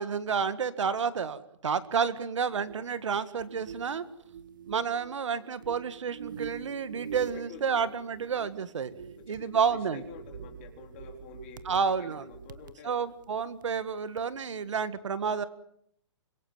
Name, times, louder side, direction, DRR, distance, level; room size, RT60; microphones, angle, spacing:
voice 1, 0.0-4.0 4.7-8.9 9.3-10.0 11.7-12.2 12.8-15.4, right 6 dB, 75° right, 14 dB, 1.8 m, -30 dB
sound 1, 2.4-13.8 14.2-14.4, right 8 dB, 40° right, 1.1 m, -46 dB
voice 2, 7.1-7.8 9.2-13.1, left 6 dB, 25° left, 3 dB, 3.9 m, -48 dB
26.0 x 22.5 x 7.5 m, 0.69 s
hypercardioid pair, 180°, 16 cm